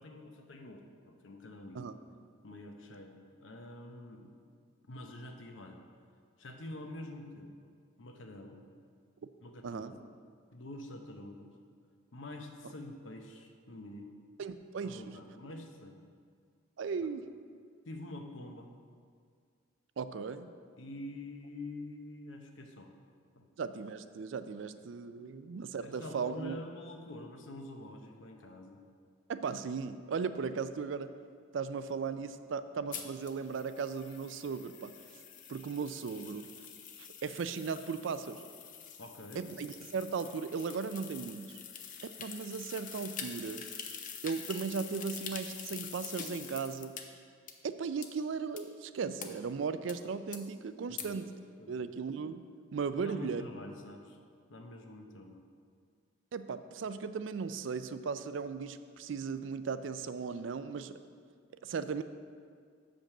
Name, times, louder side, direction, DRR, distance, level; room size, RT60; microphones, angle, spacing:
voice 1, 0.0-1.9 2.4-4.3 4.9-5.8 6.4-7.5 8.0-8.6 9.4-10.1 10.5-11.5 12.1-14.1 14.8-16.0 17.8-18.7 20.8-22.9 23.3-23.5 25.1-25.4 25.8-28.8 39.0-39.4 50.9-51.2 51.6-51.7 52.9-54.2 54.5-55.4, left 1 dB, 70° left, 4 dB, 0.8 m, -46 dB
voice 2, 9.6-9.9 14.4-15.2 16.8-17.2 20.0-20.5 23.6-26.6 29.3-31.1 31.5-35.0 35.5-36.5 37.0-38.4 39.4-41.6 42.0-43.6 44.2-46.9 47.6-51.3 51.7-52.4 52.7-53.4 56.3-61.0 61.6-62.0, right 5 dB, 65° right, 12 dB, 0.4 m, -37 dB
sound 1, 32.9-47.0 47.5-47.6 48.0-48.1 48.6-48.7 49.2-49.3 49.9-50.0 50.3-50.4 51.0-51.1, left 7 dB, 40° left, 0.6 m, -46 dB
7.3 x 5.2 x 6.5 m, 2.1 s
head